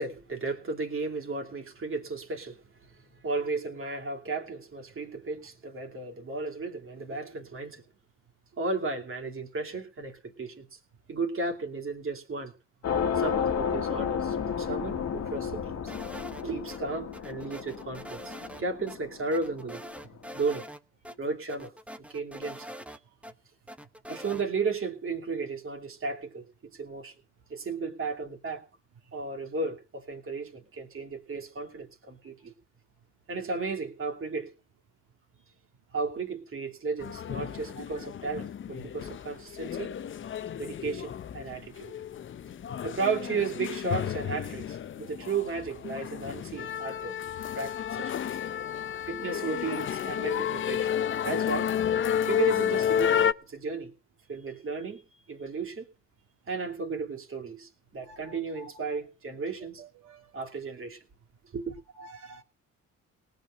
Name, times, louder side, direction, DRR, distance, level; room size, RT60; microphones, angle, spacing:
voice 1, 0.0-2.6 3.2-7.8 8.6-10.8 11.1-12.5 13.2-15.9 16.4-19.8 20.3-20.6 21.2-21.7 22.0-22.7 24.1-27.1 27.5-28.6 29.1-32.5 33.3-34.5 35.9-39.9 40.6-41.9 42.8-47.2 47.6-48.2 49.0-50.9 51.2-51.7 52.3-53.9 54.3-55.0 55.3-55.9 56.5-59.8 60.3-61.0 61.5-61.7, right 4 dB, 45° right, 2.7 m, -34 dB
sound 1, 12.8-19.7, left 7 dB, 55° left, 1.4 m, -32 dB
sound 2, 15.9-16.8 17.1-18.6 18.9-19.0 19.3-20.8 21.0-21.1 21.5-23.3 23.7-24.4, equal, 5° right, 0.9 m, -43 dB
sound 3, 37.0-53.3, left 9 dB, 40° left, 0.6 m, -31 dB
voice 2, 37.7-38.1 38.8-38.9 58.1-58.7 59.8-60.3 62.0-62.4, right 3 dB, 80° right, 2.1 m, -49 dB
18.5 x 6.5 x 6.5 m
cardioid pair, 90°, 30 cm